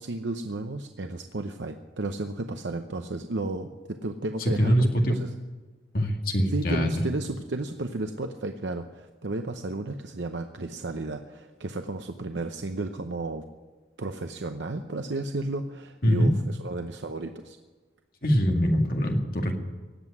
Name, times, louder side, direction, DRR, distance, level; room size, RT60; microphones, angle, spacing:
voice 1, 0.0-5.3 6.5-13.4 14.0-17.6, right 2 dB, 75° right, 6 dB, 0.8 m, -33 dB
voice 2, 4.6-5.2 5.9-6.9 16.0-16.3 18.2-19.5, equal, 50° left, 2 dB, 2.2 m, -23 dB
18.0 x 8.0 x 9.7 m, 1.3 s
head